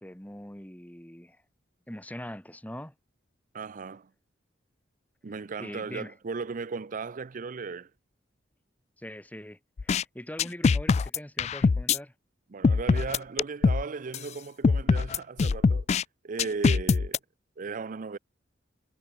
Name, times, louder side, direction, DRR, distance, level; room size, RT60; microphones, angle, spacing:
voice 1, 0.0-1.4 1.9-2.9 5.6-6.1 9.0-12.1, left 1 dB, 10° left, 2.1 m, -42 dB
voice 2, 3.5-4.1 5.2-7.9 12.5-15.9 16.2-17.2 17.6-18.2, right 4 dB, 45° right, 0.5 m, -36 dB
sound 1, 9.8-10.0 10.4-12.0 12.6-13.8 14.1-14.2 14.6-16.0 16.4-17.2, left 4 dB, 35° left, 0.3 m, -23 dB
head